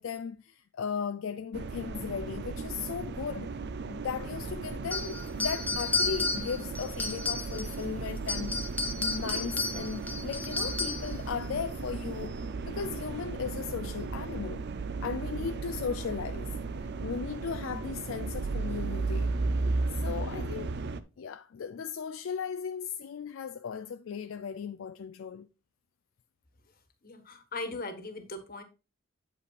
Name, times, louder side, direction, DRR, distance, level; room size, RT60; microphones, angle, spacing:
voice 1, 0.0-3.5 3.9-8.5 9.0-12.4 12.7-14.6 15.0-16.5 17.0-19.3 19.9-20.8 21.2-25.5, left 6 dB, 65° left, 0.4 m, -36 dB
sound 1, 1.5-21.0, right 3 dB, 55° right, 0.5 m, -35 dB
sound 2, 4.9-7.8 8.2-11.2, left 3 dB, 10° left, 0.8 m, -32 dB
voice 2, 27.0-28.6, left 2 dB, 45° left, 1.4 m, -39 dB
8.4 x 8.1 x 2.4 m
head